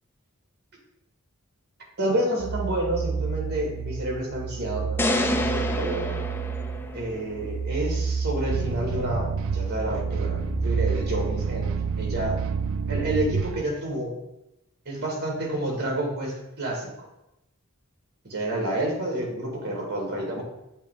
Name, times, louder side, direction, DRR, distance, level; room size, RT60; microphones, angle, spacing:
voice 1, 2.0-6.2 6.9-11.7 12.0-12.4 12.9-14.2 14.9-17.1 18.2-20.4, right 1 dB, 50° right, -1 dB, 2.0 m, -29 dB
sound 1, 2.4-11.1, right 5 dB, 15° right, 1.2 m, -30 dB
sound 2, 5.0-7.3, left 1 dB, 10° left, 0.3 m, -27 dB
sound 3, 8.5-13.6, right 5 dB, 65° right, 0.4 m, -29 dB
8.2 x 3.2 x 3.7 m, 0.90 s
head